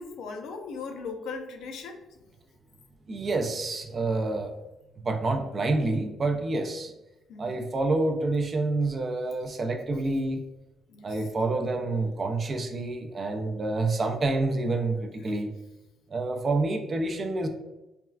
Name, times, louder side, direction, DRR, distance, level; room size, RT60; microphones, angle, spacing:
voice 1, 0.0-2.2 7.3-7.7 10.9-11.3, left 4 dB, 80° left, 4 dB, 0.4 m, -39 dB
voice 2, 3.1-4.5 5.0-6.9 7.4-10.4 11.0-15.5 16.1-17.5, right 2 dB, 40° right, 5 dB, 0.4 m, -28 dB
3.3 x 2.3 x 2.3 m, 1.0 s
cardioid pair, 90°, 0 cm